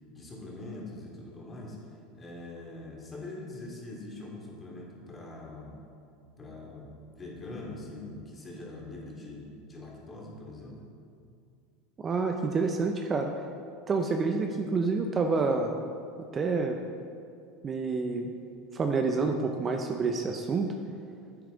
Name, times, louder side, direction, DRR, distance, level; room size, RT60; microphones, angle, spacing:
voice 1, 0.1-1.8 2.1-5.8 6.4-10.8, left 2 dB, 25° left, -2 dB, 2.5 m, -43 dB
voice 2, 12.0-13.3 13.9-15.8 16.3-16.8 17.6-18.3 18.7-20.7, right 4 dB, 30° right, 4 dB, 0.6 m, -28 dB
9.4 x 9.0 x 3.9 m, 2.4 s
supercardioid pair, 105°, 0 cm